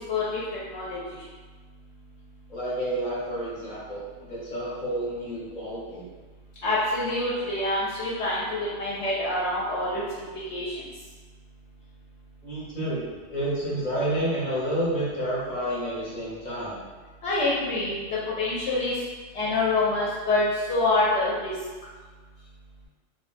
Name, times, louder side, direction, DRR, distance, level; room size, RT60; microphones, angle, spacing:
voice 1, 0.1-0.4 0.7-1.0 6.6-10.2 10.5-10.7 17.2-18.0 18.4-18.9 19.3-20.4 20.7-21.5, left 2 dB, 80° left, -7 dB, 0.9 m, -26 dB
voice 2, 2.5-6.0 12.4-13.0 13.3-16.7, right 1 dB, 45° left, -8 dB, 0.8 m, -29 dB
2.2 x 2.1 x 3.1 m, 1.4 s
omnidirectional pair, 1.2 m